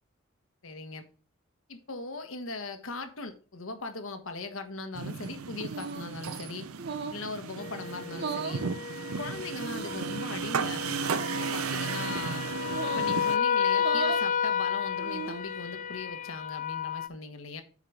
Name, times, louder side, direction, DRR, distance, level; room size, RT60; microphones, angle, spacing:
voice 1, 0.6-1.0 1.7-6.7 7.1-8.6 9.2-12.4 12.9-17.6, left 3 dB, 70° left, 1.4 m, -39 dB
sound 1, 4.9-13.4, right 6 dB, 90° right, 0.6 m, -35 dB
sound 2, 5.7-6.2 6.8-7.3 8.1-8.6 9.6-10.1 11.0-11.3 12.7-13.1 13.7-14.3 14.9-15.5, right 5 dB, 50° right, 0.8 m, -37 dB
sound 3, 7.6-17.1, left 7 dB, 40° left, 0.4 m, -32 dB
9.3 x 4.9 x 5.0 m
head